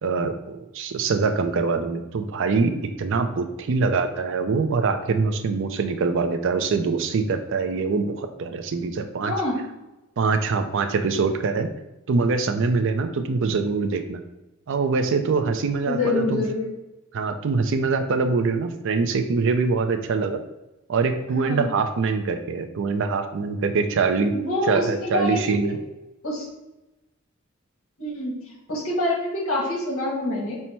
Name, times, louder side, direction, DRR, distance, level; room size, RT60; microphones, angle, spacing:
voice 1, 0.0-2.7 3.0-9.3 10.2-11.7 12.1-14.2 14.7-16.4 17.1-20.4 20.9-24.3 24.7-25.8, right 4 dB, 60° right, 8 dB, 0.4 m, -24 dB
voice 2, 9.2-9.6 15.8-16.7 21.3-21.7 24.3-25.8 26.2-26.4 28.0-30.6, left 2 dB, 80° left, -3 dB, 1.6 m, -26 dB
5.5 x 2.1 x 4.4 m, 0.99 s
head